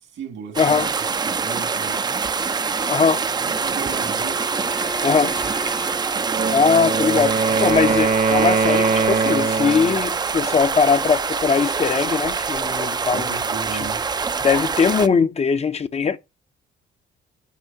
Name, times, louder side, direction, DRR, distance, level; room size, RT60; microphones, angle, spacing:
voice 1, 0.0-2.3 3.2-4.4 7.1-7.3 13.1-14.1, right 6 dB, 75° right, 2.0 m, -36 dB
sound 1, 0.5-15.1, right 5 dB, 20° right, 0.3 m, -25 dB
voice 2, 0.6-0.9 2.8-3.2 5.0-5.3 6.5-7.3 7.6-13.3 14.4-16.2, left 5 dB, 35° left, 0.5 m, -20 dB
Wind instrument woodwind instrument, 3.3-7.4, left 1 dB, 80° left, 2.8 m, -38 dB
Wind instrument woodwind instrument 2, 6.2-10.0, right 5 dB, 40° right, 0.8 m, -21 dB
9.6 x 4.9 x 2.7 m
cardioid pair, 90°, 20 cm